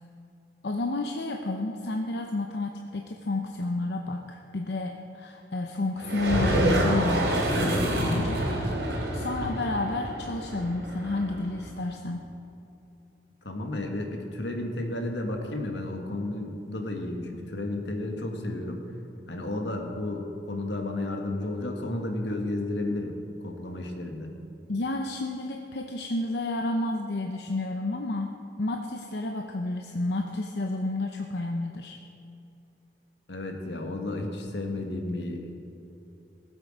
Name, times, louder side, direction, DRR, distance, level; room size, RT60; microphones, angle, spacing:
voice 1, 0.6-12.3 24.7-28.3 28.6-32.0, left 2 dB, 65° left, 3 dB, 0.7 m, -31 dB
sound 1, 6.0-11.7, right 1 dB, 75° right, 2.9 m, -27 dB
voice 2, 13.4-18.9 19.3-23.1 23.4-24.3 33.3-35.5, left 2 dB, 80° left, 3 dB, 1.7 m, -32 dB
19.0 x 8.2 x 5.1 m, 2.8 s
head